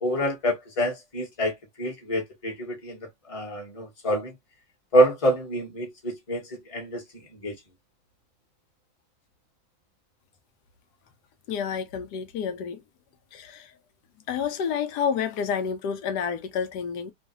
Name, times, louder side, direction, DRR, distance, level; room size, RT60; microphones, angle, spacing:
voice 1, 0.0-4.3 4.9-7.0 7.4-7.6, equal, 25° left, 1.1 m, -26 dB
voice 2, 11.5-12.8 13.3-13.7 14.3-17.1, left 7 dB, 90° left, 1.3 m, -29 dB
3.1 x 2.3 x 2.7 m
omnidirectional pair, 1.7 m